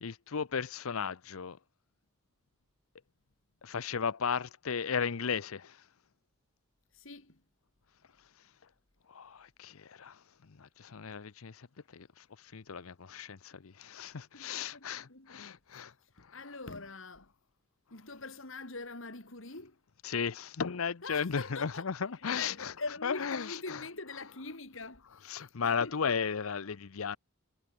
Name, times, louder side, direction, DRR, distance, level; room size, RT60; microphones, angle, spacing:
voice 1, 0.0-1.6 3.6-5.8 9.1-11.7 11.9-15.9 16.2-16.4 20.0-22.7 23.0-23.8 25.3-27.2, left 6 dB, 85° left, 0.7 m, -35 dB
voice 2, 6.9-7.4 14.1-17.3 17.9-19.8 21.0-26.1, left 3 dB, 65° left, 3.4 m, -44 dB
head